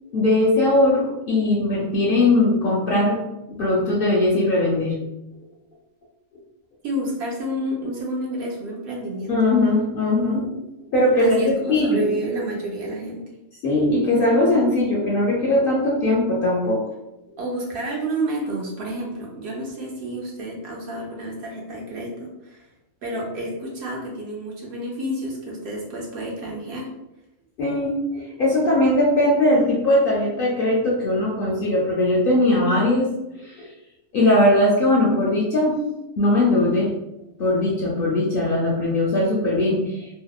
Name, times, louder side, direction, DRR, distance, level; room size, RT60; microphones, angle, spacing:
voice 1, 0.1-3.2 3.6-5.0 9.3-10.5 10.9-12.0 13.6-16.8 27.6-33.1 33.4-33.7 34.1-35.8 36.2-36.9 37.4-40.1, left 1 dB, 60° left, -4 dB, 0.6 m, -20 dB
voice 2, 6.8-9.4 11.2-13.2 17.4-22.7 23.0-26.9, right 1 dB, 65° right, -2 dB, 0.7 m, -30 dB
2.8 x 2.0 x 2.2 m, 0.92 s
omnidirectional pair, 1.3 m